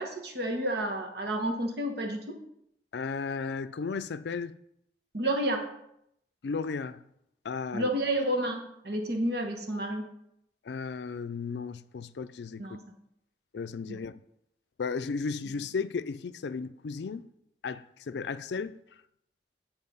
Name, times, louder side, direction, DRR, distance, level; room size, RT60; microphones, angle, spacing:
voice 1, 0.0-2.4 5.1-5.6 7.7-10.1 12.6-12.8 13.9-14.0, right 1 dB, 65° right, 1.2 m, -30 dB
voice 2, 2.9-4.6 6.4-7.0 7.4-7.9 10.6-12.6 13.5-14.1 14.8-17.2 17.6-18.8, left 5 dB, 75° left, 0.4 m, -34 dB
9.7 x 4.4 x 5.4 m
head